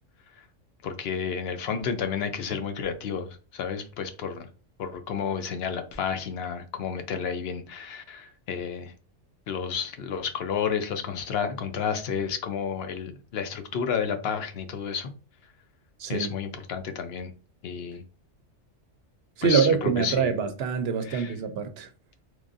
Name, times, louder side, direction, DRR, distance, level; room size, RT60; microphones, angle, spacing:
voice 1, 0.8-4.5 4.8-8.9 9.5-15.1 16.1-17.3 17.6-18.0 19.4-20.4 21.0-21.3, left 7 dB, 60° left, 0.8 m, -31 dB
voice 2, 19.4-21.9, right 6 dB, 65° right, 0.7 m, -25 dB
3.7 x 3.2 x 2.5 m
omnidirectional pair, 1.3 m